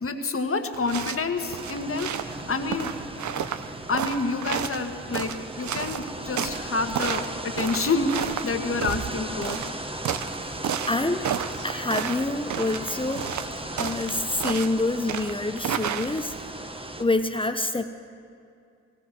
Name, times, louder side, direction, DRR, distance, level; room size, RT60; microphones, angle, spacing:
voice 1, 0.0-2.9 3.9-9.6, left 3 dB, 50° left, 6 dB, 1.4 m, -28 dB
sound 1, 0.7-16.5, right 9 dB, 75° right, 0.6 m, -33 dB
sound 2, 1.4-17.0, right 1 dB, 20° right, 1.2 m, -37 dB
voice 2, 10.9-11.3 11.6-13.3 13.8-16.4 16.7-17.8, left 2 dB, 20° left, 8 dB, 0.8 m, -27 dB
16.5 x 16.5 x 4.5 m, 2.4 s
cardioid pair, 45°, 29 cm